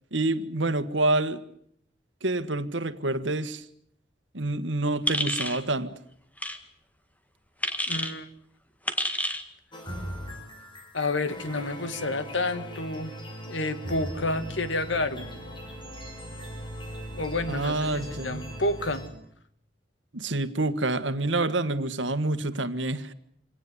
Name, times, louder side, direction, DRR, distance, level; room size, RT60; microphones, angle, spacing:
voice 1, 0.1-1.4 2.2-3.6 4.3-5.9 17.5-18.5 20.1-23.1, right 2 dB, 85° right, 12 dB, 1.7 m, -27 dB
sound 1, 5.1-5.6 6.4-6.6 7.6-8.1 8.9-9.4, left 1 dB, 10° left, 1.9 m, -28 dB
voice 2, 7.9-8.3 10.9-13.1 13.5-15.3 17.1-19.0, left 2 dB, 90° left, 12 dB, 2.0 m, -29 dB
sound 2, 9.7-19.1, equal, 25° left, 5.4 m, -39 dB
26.5 x 18.0 x 9.7 m, 0.69 s
head